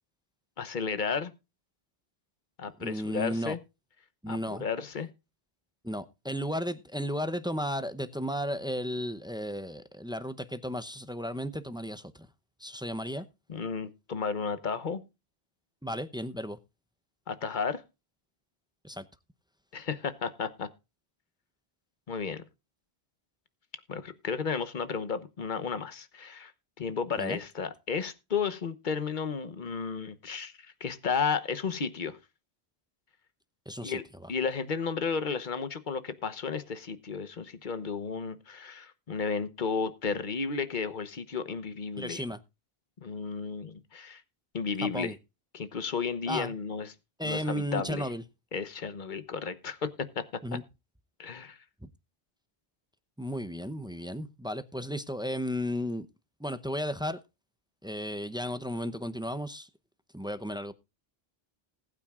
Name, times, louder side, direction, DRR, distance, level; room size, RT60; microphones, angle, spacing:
voice 1, 0.6-1.3 2.6-3.6 4.3-5.1 13.5-15.0 17.3-17.8 19.7-20.7 22.1-22.4 23.9-26.5 26.8-32.2 33.8-34.0 34.3-42.2 43.0-44.2 44.5-45.1 45.5-46.9 47.2-48.1 48.5-50.2 50.5-50.6 51.2-51.6, left 5 dB, 50° left, 1.2 m, -33 dB
voice 2, 2.8-3.6 4.2-4.6 5.8-12.3 12.6-13.3 15.8-16.6 18.8-19.0 27.2-27.4 33.7-34.0 42.0-42.4 44.8-45.2 46.3-46.5 47.2-48.2 50.4-50.6 51.8-51.9 53.2-56.1 56.4-57.2 57.8-59.7 60.1-60.7, equal, 5° right, 0.6 m, -34 dB
20.0 x 8.9 x 2.4 m
omnidirectional pair, 1.0 m